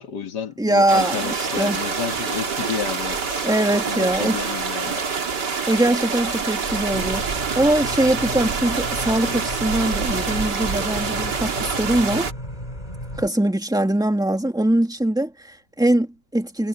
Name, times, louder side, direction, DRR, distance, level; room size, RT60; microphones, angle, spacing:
voice 1, 0.0-3.5 3.9-5.0, left 7 dB, 65° left, 2.1 m, -31 dB
voice 2, 0.6-1.8 3.4-4.4 5.7-12.3 13.2-16.7, right 1 dB, ahead, 2.1 m, -22 dB
sound 1, 0.9-12.3, right 5 dB, 65° right, 2.8 m, -26 dB
sound 2, 6.9-13.3, equal, 20° left, 5.4 m, -34 dB
omnidirectional pair, 2.0 m